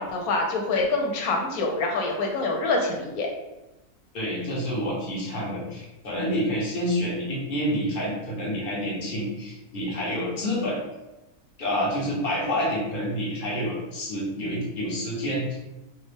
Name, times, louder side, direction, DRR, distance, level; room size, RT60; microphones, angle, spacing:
voice 1, 0.0-3.3, left 3 dB, 85° left, 1 dB, 1.1 m, -26 dB
voice 2, 4.1-10.8 11.6-15.6, equal, 40° left, -5 dB, 1.1 m, -28 dB
3.4 x 2.3 x 3.3 m, 1.0 s
omnidirectional pair, 1.5 m